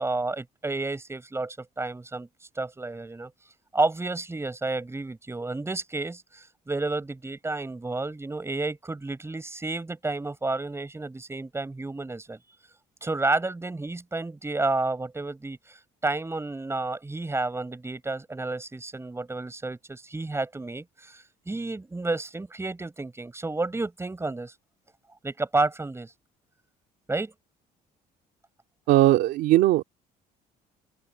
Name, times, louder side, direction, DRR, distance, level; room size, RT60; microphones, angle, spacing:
voice 1, 0.0-2.3 2.6-3.3 3.7-12.4 13.0-15.8 16.0-24.5 25.2-26.1 27.1-27.3, right 2 dB, 15° right, 6.0 m, -31 dB
voice 2, 28.9-29.8, right 16 dB, 85° right, 2.4 m, -19 dB
open air
cardioid pair, 110°, 17 cm